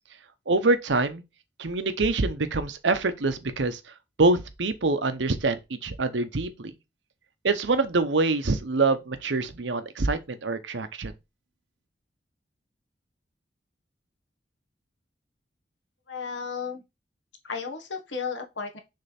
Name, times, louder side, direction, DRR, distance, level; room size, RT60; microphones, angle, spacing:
voice 1, 0.5-1.2 1.6-3.8 4.2-6.7 7.4-11.1, right 3 dB, 80° right, 0.8 m, -25 dB
voice 2, 16.1-16.8 17.4-18.8, left 5 dB, 85° left, 1.4 m, -34 dB
6.6 x 3.4 x 4.2 m
head